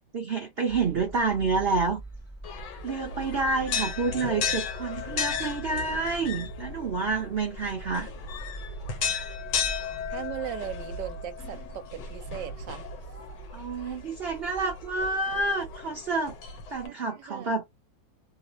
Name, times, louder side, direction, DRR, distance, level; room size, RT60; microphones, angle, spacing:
voice 1, 0.1-2.0 2.8-8.1 13.5-16.3 16.7-17.6, right 3 dB, 60° right, 0.6 m, -28 dB
sound 1, 0.7-15.1, right 1 dB, 20° left, 0.4 m, -45 dB
sound 2, 2.4-16.9, left 6 dB, 70° left, 1.3 m, -35 dB
voice 2, 10.1-12.9 13.8-14.0 16.8-17.5, right 11 dB, 75° right, 1.2 m, -38 dB
3.0 x 2.0 x 2.5 m
omnidirectional pair, 2.0 m